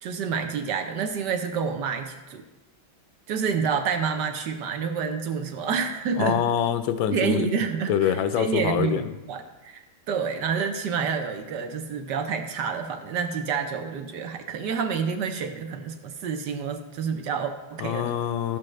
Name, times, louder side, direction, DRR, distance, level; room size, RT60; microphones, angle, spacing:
voice 1, 0.0-2.4 3.3-6.4 7.1-18.2, right 6 dB, 65° right, 6 dB, 1.3 m, -28 dB
voice 2, 6.2-7.5 7.9-9.1 17.8-18.6, left 9 dB, 80° left, 10 dB, 1.3 m, -25 dB
13.0 x 7.7 x 3.2 m, 1.1 s
omnidirectional pair, 2.2 m